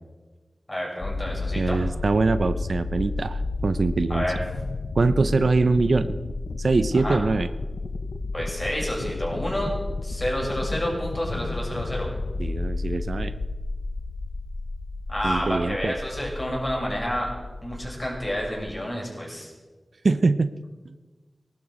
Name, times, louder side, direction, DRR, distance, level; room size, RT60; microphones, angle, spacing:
voice 1, 0.7-1.8 4.1-4.4 6.9-7.2 8.3-9.7 10.0-12.1 15.1-17.3 17.6-19.5, equal, 30° left, -2 dB, 6.6 m, -29 dB
sound 1, 1.0-18.8, left 3 dB, 85° left, 0.7 m, -32 dB
voice 2, 1.6-4.2 5.0-6.2 6.6-7.5 12.4-13.3 15.2-15.9 20.0-20.5, right 3 dB, 75° right, 12 dB, 0.6 m, -23 dB
18.0 x 12.0 x 6.4 m, 1.3 s
wide cardioid pair, 50°, 0 cm